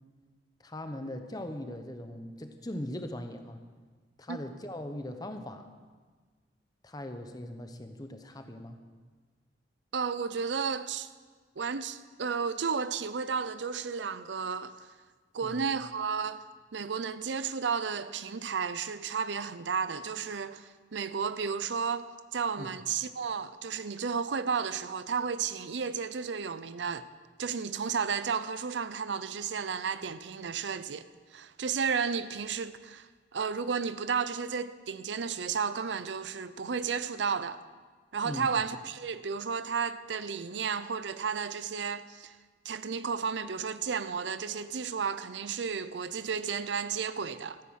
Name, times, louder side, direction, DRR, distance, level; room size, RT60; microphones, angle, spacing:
voice 1, 0.6-3.6 4.2-5.7 6.8-8.8 15.4-15.6 22.6-22.7 38.2-38.5, left 1 dB, 20° left, 0.9 m, -40 dB
voice 2, 9.9-11.1 11.6-14.7 15.3-16.4 16.7-27.1 27.4-31.0 31.3-37.6 38.1-42.4 42.6-47.6, right 6 dB, 85° right, 0.6 m, -33 dB
14.0 x 9.3 x 6.4 m
head